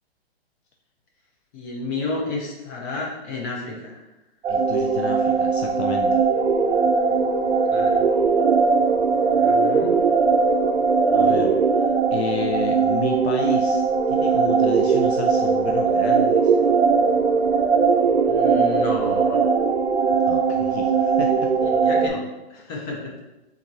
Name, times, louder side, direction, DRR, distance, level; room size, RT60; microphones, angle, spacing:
voice 1, 1.5-4.0 7.7-8.0 9.3-10.0 11.3-11.5 18.3-19.4 21.6-22.2 22.5-23.0, left 3 dB, 20° left, -2 dB, 0.6 m, -31 dB
sound 1, 4.4-22.1, right 5 dB, 75° right, 0.6 m, -20 dB
voice 2, 4.5-6.2 11.1-11.5 12.1-16.6 20.3-21.5 22.7-22.9, left 6 dB, 75° left, 3 dB, 0.5 m, -32 dB
3.6 x 3.1 x 3.9 m, 0.99 s
hypercardioid pair, 150°, 32 cm